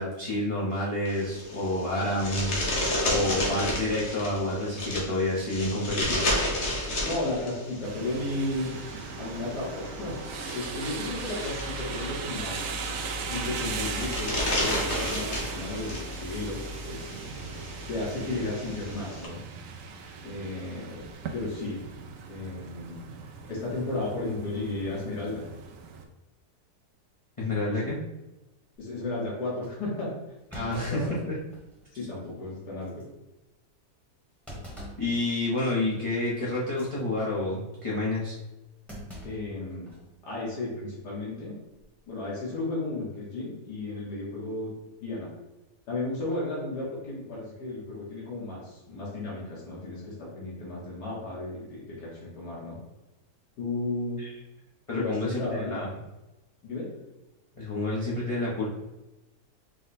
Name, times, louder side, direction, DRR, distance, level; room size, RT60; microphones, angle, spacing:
voice 1, 0.0-2.7 3.1-6.3 27.4-28.0 30.5-31.3 35.0-38.4 54.2-54.3 54.9-55.9 57.5-58.7, left 1 dB, 30° left, -7 dB, 0.6 m, -29 dB
sound 1, 1.1-19.3, left 1 dB, 50° left, 1.1 m, -33 dB
voice 2, 7.0-8.7 9.2-10.2 10.5-12.8 13.3-17.1 17.9-19.4 20.2-21.1 21.3-21.8 22.3-23.0 23.5-25.4 27.6-27.9 28.8-30.1 30.7-31.2 31.9-33.0 39.2-39.9 40.2-41.6 42.1-44.7 45.0-45.3 45.9-52.8 53.6-54.2 54.9-55.7 56.6-56.9, left 2 dB, 80° left, -6 dB, 1.7 m, -34 dB
sound 2, 7.8-26.0, right 4 dB, 70° right, 0.8 m, -37 dB
Thump thud, 29.6-29.7 30.5-31.8 32.2-32.3 32.8-33.0 34.5-35.1 35.6-35.8 36.6-36.9 38.9-40.1 40.4-40.5 41.6-42.0, equal, ahead, 1.0 m, -44 dB
4.9 x 2.1 x 4.1 m, 1.0 s
omnidirectional pair, 1.7 m